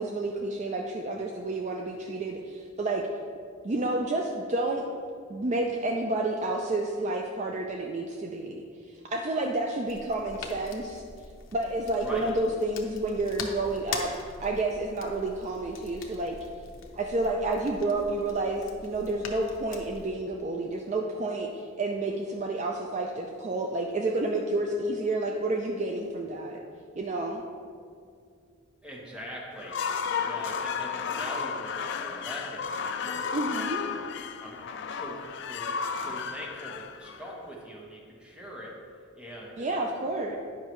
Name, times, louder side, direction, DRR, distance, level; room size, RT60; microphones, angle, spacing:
voice 1, 0.0-3.0 3.6-4.8 5.3-8.6 8.9-11.0 11.5-14.1 14.4-16.4 16.9-26.6 27.0-27.4 33.3-33.8 39.6-40.4, right 2 dB, 35° right, 2 dB, 0.4 m, -30 dB
sound 1, 9.9-20.1, left 4 dB, 70° left, 0.8 m, -43 dB
voice 2, 28.8-29.8 30.2-33.5 33.8-34.1 34.4-38.8 39.1-39.9, equal, 5° right, -3 dB, 1.0 m, -42 dB
sound 2, 29.5-37.7, left 6 dB, 55° left, 0.3 m, -33 dB
9.5 x 5.5 x 3.1 m, 2.2 s
head